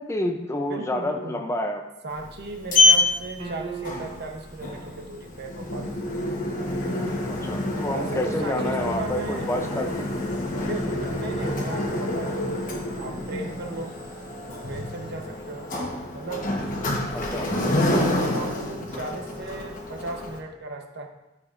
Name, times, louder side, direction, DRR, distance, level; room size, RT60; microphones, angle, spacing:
voice 1, 0.0-1.8 7.2-10.1 15.3-15.4 17.1-17.5, left 1 dB, 15° left, 4 dB, 0.5 m, -29 dB
voice 2, 0.6-1.4 2.0-6.1 7.9-9.5 10.5-12.6 13.0-14.0 14.6-15.7 16.1-16.5 17.8-21.1, right 2 dB, 60° right, 3 dB, 0.9 m, -36 dB
Sliding door, 2.1-20.4, left 2 dB, 45° left, 1.1 m, -27 dB
sound 1, 3.4-4.5, right 5 dB, 30° right, 1.0 m, -37 dB
11.5 x 6.0 x 2.5 m, 0.96 s
head